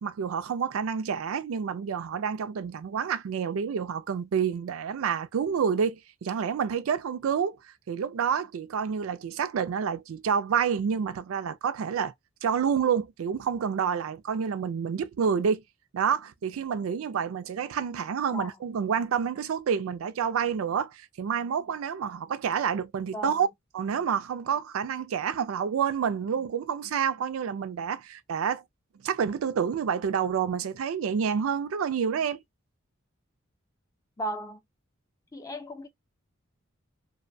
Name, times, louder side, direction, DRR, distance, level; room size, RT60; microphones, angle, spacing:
voice 1, 0.0-7.6 7.9-12.1 12.4-15.6 15.9-23.5 23.7-28.6 29.0-32.4, right 7 dB, 90° right, 0.4 m, -28 dB
voice 2, 34.2-34.6 35.3-35.9, equal, 15° left, 0.5 m, -35 dB
2.6 x 2.1 x 2.5 m
head